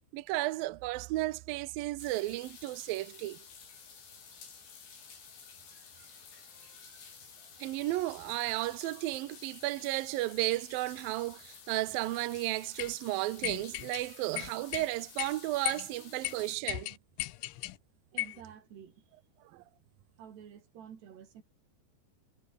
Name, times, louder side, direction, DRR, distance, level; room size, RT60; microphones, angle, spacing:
voice 1, 0.1-3.4 7.6-17.0 19.5-19.6, right 18 dB, 85° right, 2.0 m, -33 dB
sound 1, 2.0-16.6, left 6 dB, 70° left, 8.2 m, -52 dB
sound 2, 12.8-12.9 13.4-14.0 14.4-14.9 15.2-15.3 15.7-15.9 16.2-16.3 16.7-17.8 18.2-18.4, left 17 dB, 90° left, 3.4 m, -36 dB
voice 2, 18.1-19.0 20.2-21.4, right 8 dB, 65° right, 5.1 m, -50 dB
omnidirectional pair, 5.4 m